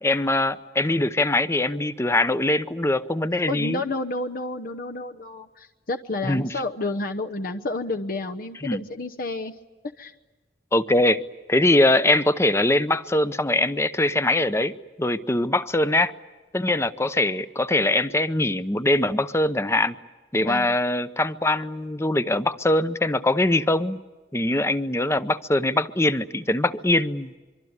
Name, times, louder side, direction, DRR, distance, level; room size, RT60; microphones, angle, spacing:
voice 1, 0.0-3.8 6.2-6.5 8.6-8.8 10.7-11.2 11.5-14.7 15.0-16.1 16.5-19.9 20.3-24.0 24.3-27.3, left 1 dB, 15° left, 13 dB, 0.8 m, -22 dB
voice 2, 3.5-9.6 10.0-10.1 20.4-20.7, left 2 dB, 55° left, 5 dB, 0.9 m, -30 dB
24.5 x 24.5 x 9.6 m, 1.2 s
head